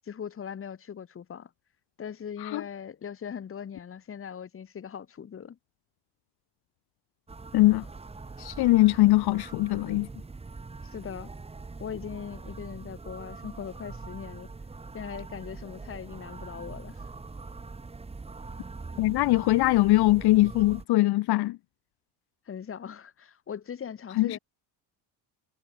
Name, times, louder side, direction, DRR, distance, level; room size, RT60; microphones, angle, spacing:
voice 1, 0.0-1.5 2.0-5.6 10.8-11.3 11.8-14.5 14.9-17.0 22.5-24.4, left 8 dB, 30° left, 4.7 m, -40 dB
sound 1, 7.3-20.9, right 3 dB, 15° right, 5.1 m, -43 dB
voice 2, 7.5-7.9 8.4-10.1 19.0-21.6 24.1-24.4, left 18 dB, 65° left, 1.1 m, -22 dB
cardioid pair, 175°, 42 cm